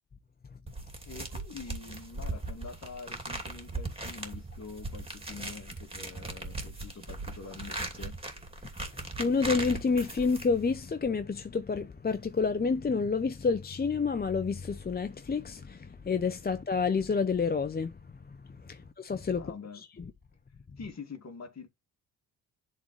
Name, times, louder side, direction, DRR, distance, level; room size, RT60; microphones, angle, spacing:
sound 1, 0.7-10.8, right 2 dB, 15° right, 2.8 m, -39 dB
voice 1, 1.1-8.2 18.8-18.9 19.4-19.8 20.8-21.7, left 4 dB, 40° left, 2.2 m, -45 dB
voice 2, 8.9-18.0 18.6-19.4, left 5 dB, 25° left, 0.7 m, -29 dB
11.0 x 3.9 x 3.2 m
cardioid pair, 75°, 39 cm